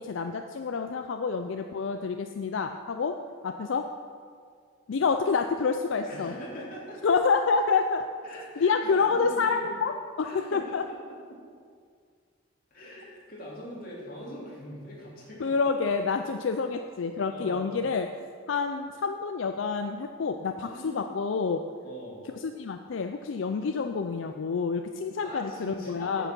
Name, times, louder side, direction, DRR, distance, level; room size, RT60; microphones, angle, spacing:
voice 1, 0.0-3.9 4.9-6.3 7.0-8.1 8.6-9.9 10.2-10.8 15.4-18.1 18.5-21.7 22.4-26.3, left 5 dB, 75° left, 6 dB, 0.4 m, -28 dB
voice 2, 6.1-7.1 8.2-9.6 10.2-11.4 12.7-15.5 17.3-17.8 20.6-21.0 21.8-22.3 25.2-26.3, equal, 45° left, -6 dB, 3.0 m, -42 dB
9.0 x 8.2 x 6.1 m, 2.1 s
head